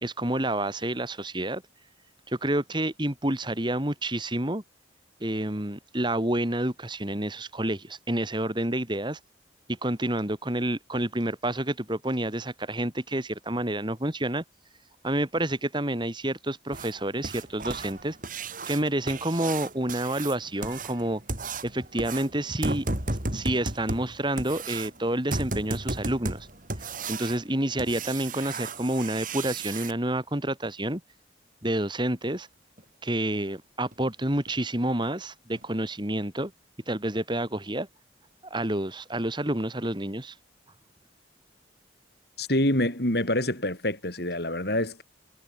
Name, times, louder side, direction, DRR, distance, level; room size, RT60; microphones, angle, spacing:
voice 1, 0.0-1.6 2.3-4.6 5.2-9.2 9.7-14.4 15.0-18.2 18.7-21.2 21.6-22.9 23.3-26.5 27.1-31.0 31.6-32.5 33.0-36.5 36.9-37.9 38.4-40.3, right 1 dB, 25° right, 2.8 m, -29 dB
sound 1, 16.7-29.9 32.2-32.3 32.8-32.9 33.3-33.4 33.9-34.0 34.5-34.6 35.0-35.1 35.6-35.7, right 2 dB, 45° right, 5.0 m, -34 dB
voice 2, 42.4-45.0, left 1 dB, 60° left, 6.2 m, -26 dB
head